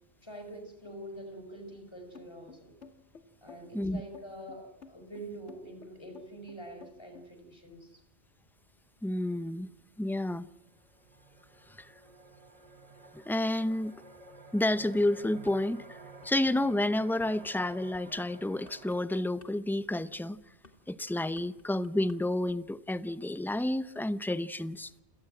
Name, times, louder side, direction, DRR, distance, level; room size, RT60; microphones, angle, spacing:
voice 1, 0.2-2.8 3.4-8.0, right 1 dB, 25° left, 5.3 m, -45 dB
sound 1, 2.2-7.3, left 6 dB, 80° left, 2.6 m, -52 dB
voice 2, 9.0-9.7 10.0-10.5 11.8-11.9 13.1-13.9 14.5-16.0 16.2-20.4 20.9-24.9, left 1 dB, ahead, 0.6 m, -30 dB
sound 2, 10.1-10.2 10.6-19.1, right 3 dB, 35° right, 1.8 m, -52 dB
sound 3, 15.0-15.6 16.0-22.2 22.5-22.8, left 2 dB, 50° left, 2.8 m, -57 dB
28.5 x 18.0 x 7.7 m
omnidirectional pair, 1.2 m